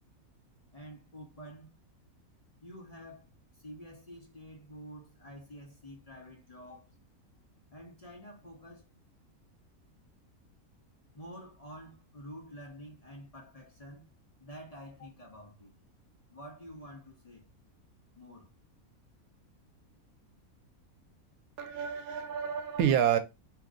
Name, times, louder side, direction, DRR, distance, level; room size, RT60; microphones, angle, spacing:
voice 1, 0.7-1.8 2.6-3.3 3.5-6.9 7.7-8.9 11.1-14.1 14.4-15.7 16.3-17.5 18.1-18.5, equal, 40° left, 0.6 m, -49 dB
voice 2, 21.6-23.2, right 9 dB, 80° right, 1.0 m, -28 dB
2.9 x 2.5 x 3.6 m
omnidirectional pair, 1.5 m